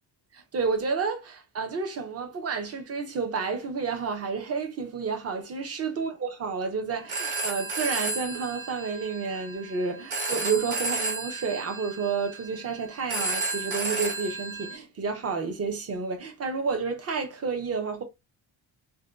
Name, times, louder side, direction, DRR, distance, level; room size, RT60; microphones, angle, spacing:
voice 1, 0.3-18.0, right 5 dB, 35° right, 0.6 m, -30 dB
Telephone, 6.9-14.8, right 3 dB, 75° right, 1.0 m, -33 dB
2.6 x 2.2 x 3.4 m
wide cardioid pair, 175°, 47 cm